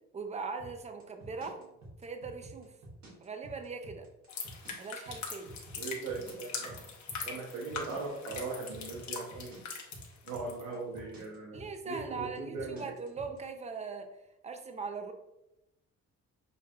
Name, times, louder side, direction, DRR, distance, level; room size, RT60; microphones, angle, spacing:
voice 1, 0.1-1.6 2.0-2.7 3.2-4.1 4.8-5.5 11.5-14.1 14.4-15.1, right 4 dB, 20° right, 6 dB, 0.6 m, -40 dB
sound 1, 0.6-13.4, right 1 dB, 70° right, 1.5 m, -50 dB
sound 2, 4.3-10.6 11.0-11.3, left 5 dB, 70° left, 1.1 m, -42 dB
voice 2, 5.8-6.8 7.2-9.6 10.2-12.9, right 3 dB, 90° right, -2 dB, 0.9 m, -39 dB
6.4 x 2.8 x 2.4 m, 0.91 s
cardioid pair, 90°, 30 cm